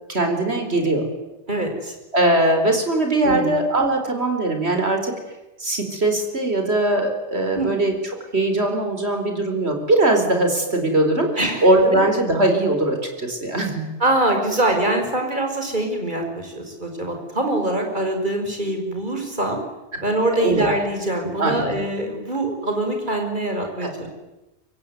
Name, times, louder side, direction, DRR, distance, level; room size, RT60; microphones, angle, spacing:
voice 1, 0.1-1.0 2.1-5.2 5.6-7.9 8.3-11.3 11.6-13.9 20.4-20.6 21.4-21.8 23.8-23.9, right 2 dB, 65° right, 4 dB, 4.8 m, -20 dB
voice 2, 1.5-1.9 3.2-3.6 7.6-7.7 11.4-11.7 11.9-12.0 14.0-19.6 20.0-24.1, right 1 dB, 40° right, 3 dB, 5.7 m, -24 dB
25.0 x 23.5 x 9.5 m, 1.0 s
omnidirectional pair, 1.2 m